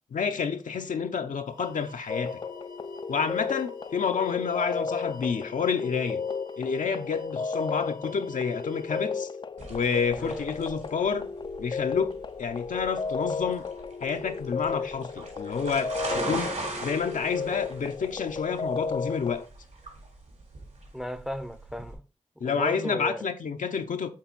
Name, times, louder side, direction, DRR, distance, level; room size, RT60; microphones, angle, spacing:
voice 1, 0.1-2.4 3.1-6.2 6.6-9.3 9.7-11.3 11.6-13.6 14.0-19.4 22.4-24.1, left 6 dB, 75° left, 0.7 m, -29 dB
sound 1, 1.5-9.1, left 2 dB, 25° right, 0.9 m, -52 dB
sound 2, 2.1-19.5, left 5 dB, 35° left, 0.4 m, -34 dB
sound 3, 9.6-21.9, right 3 dB, 70° right, 3.8 m, -39 dB
voice 2, 10.2-10.5 20.9-22.0 22.4-23.3, equal, 5° right, 0.6 m, -35 dB
7.7 x 3.8 x 4.0 m
cardioid pair, 50°, 13 cm